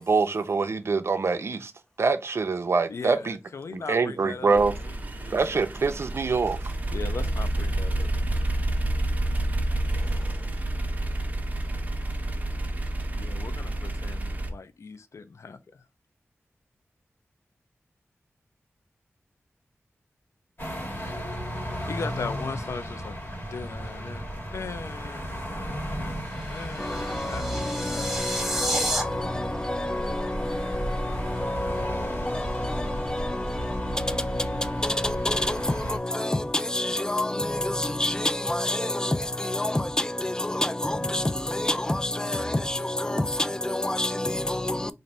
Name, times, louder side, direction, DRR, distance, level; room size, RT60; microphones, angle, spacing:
voice 1, 0.0-1.7 2.0-3.4 3.7-4.7 5.3-6.6, right 4 dB, 65° right, 0.5 m, -24 dB
voice 2, 2.9-5.6 6.9-8.1 13.2-15.6 21.8-23.2 23.5-24.3 24.5-25.2 25.5-26.2 26.5-28.2, left 4 dB, 80° left, 0.5 m, -39 dB
sound 1, 4.5-14.5, right 1 dB, 35° right, 0.7 m, -29 dB
sound 2, 20.6-36.0, equal, 45° left, 1.5 m, -34 dB
sound 3, 26.3-29.0, right 1 dB, 5° right, 0.9 m, -30 dB
voice 3, 26.8-44.9, left 1 dB, 15° left, 0.3 m, -28 dB
4.0 x 2.6 x 3.2 m
wide cardioid pair, 80°, 5 cm